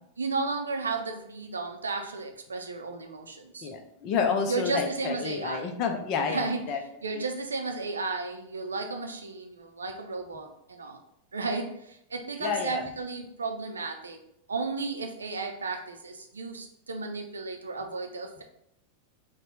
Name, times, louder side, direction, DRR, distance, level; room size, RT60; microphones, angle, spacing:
voice 1, 0.2-3.7 4.5-5.7 6.3-11.0 11.3-14.2 14.5-18.4, right 3 dB, 75° right, 5 dB, 0.5 m, -34 dB
voice 2, 3.6-6.8 12.4-12.8, left 5 dB, 40° left, 5 dB, 0.6 m, -29 dB
4.2 x 2.2 x 3.9 m, 0.76 s
figure-of-eight pair, 90°, 0 cm